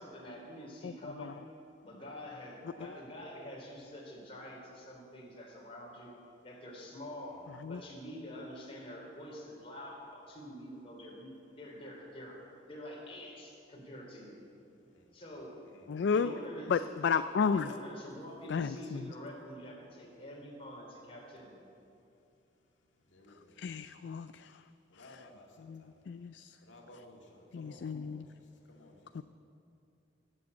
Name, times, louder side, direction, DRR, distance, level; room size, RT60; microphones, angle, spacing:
voice 1, 0.0-1.4 1.8-6.1 6.4-12.4 12.7-14.4 15.1-15.6 16.1-16.9 17.5-21.6, equal, 30° left, -2 dB, 3.5 m, -46 dB
voice 2, 15.9-16.3 16.7-17.7 18.5-19.0 23.6-24.5 25.6-26.5 27.5-28.3 29.1-29.2, left 5 dB, 65° left, 12 dB, 0.4 m, -32 dB
voice 3, 23.1-23.6 24.9-25.9 26.6-29.1, left 1 dB, 90° left, 0 dB, 2.0 m, -57 dB
18.0 x 7.7 x 8.2 m, 2.7 s
head